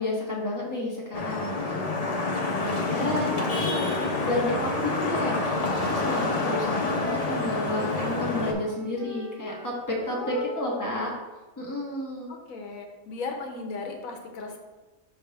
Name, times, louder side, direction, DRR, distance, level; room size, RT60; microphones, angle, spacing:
voice 1, 0.0-11.1 11.6-12.3, left 1 dB, 15° left, -4 dB, 1.2 m, -31 dB
Vehicle horn car horn honking / Traffic noise roadway noise, 1.1-8.5, left 3 dB, 35° left, 0.7 m, -28 dB
Wind instrument woodwind instrument, 3.4-6.4 6.8-10.3, equal, 45° right, 0.9 m, -41 dB
voice 2, 5.8-6.2 10.1-10.8 12.3-14.6, left 4 dB, 85° left, 3 dB, 1.3 m, -37 dB
5.5 x 3.4 x 5.6 m, 1.2 s
omnidirectional pair, 1.4 m